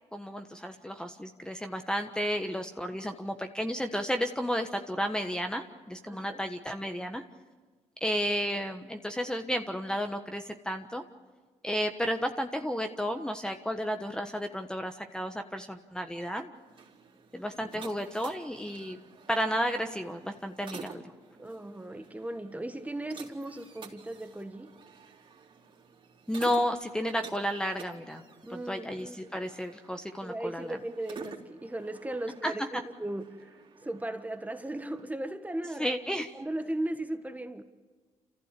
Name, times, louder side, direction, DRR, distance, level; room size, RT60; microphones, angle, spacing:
voice 1, 0.1-7.2 8.0-11.0 11.6-16.5 17.3-19.0 19.3-21.0 26.3-28.2 28.5-30.8 32.4-32.8 35.8-36.3, equal, 5° left, 1.3 m, -32 dB
voice 2, 6.1-6.4 21.4-24.8 28.4-28.9 30.2-37.6, right 1 dB, 10° right, 1.5 m, -37 dB
sound 1, 16.5-35.1, right 5 dB, 45° right, 3.2 m, -51 dB
28.0 x 15.0 x 8.4 m
supercardioid pair, 70°, 13 cm